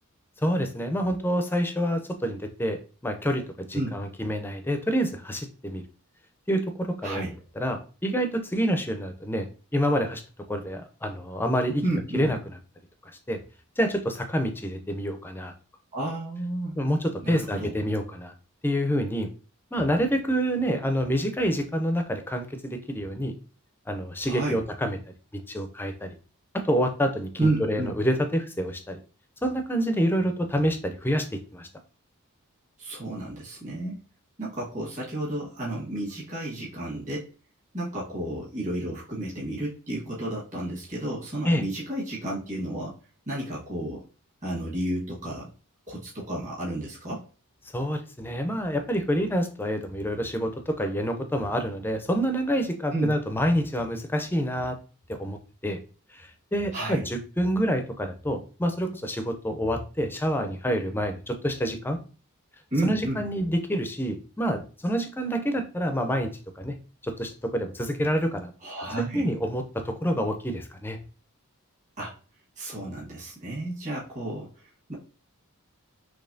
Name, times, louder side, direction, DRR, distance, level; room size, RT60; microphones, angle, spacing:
voice 1, 0.4-5.8 6.5-7.2 7.6-10.2 10.5-11.8 12.1-12.4 13.3-13.4 13.8-15.5 16.8-18.3 18.6-19.3 19.7-23.3 23.9-25.0 25.3-26.1 26.5-29.0 29.4-31.7 41.5-41.6 47.7-54.8 55.1-55.8 56.1-62.0 62.8-66.8 67.0-68.5 69.0-71.0, equal, 10° left, 6 dB, 0.4 m, -27 dB
voice 2, 7.0-7.3 11.8-12.3 15.9-16.8 17.2-17.7 24.2-24.6 27.4-27.9 32.8-34.0 34.4-37.3 37.7-42.9 43.3-44.0 44.4-45.5 45.9-47.3 52.9-53.1 56.7-57.1 62.7-63.2 68.6-69.3 72.0-72.1 72.6-74.9, right 1 dB, 35° right, -5 dB, 1.4 m, -32 dB
4.0 x 3.0 x 2.6 m, 0.36 s
head